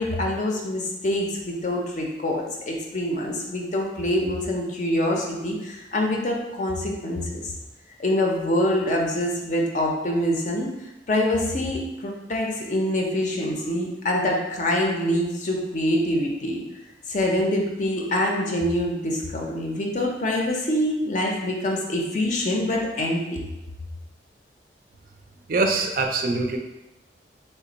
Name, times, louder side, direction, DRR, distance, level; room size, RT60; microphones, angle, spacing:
voice 1, 0.0-7.5 8.0-10.7 11.1-16.6 17.1-23.4, left 1 dB, 45° left, 0 dB, 0.5 m, -25 dB
voice 2, 25.5-26.6, right 3 dB, 50° right, 3 dB, 0.4 m, -23 dB
3.3 x 2.2 x 3.9 m, 0.97 s
head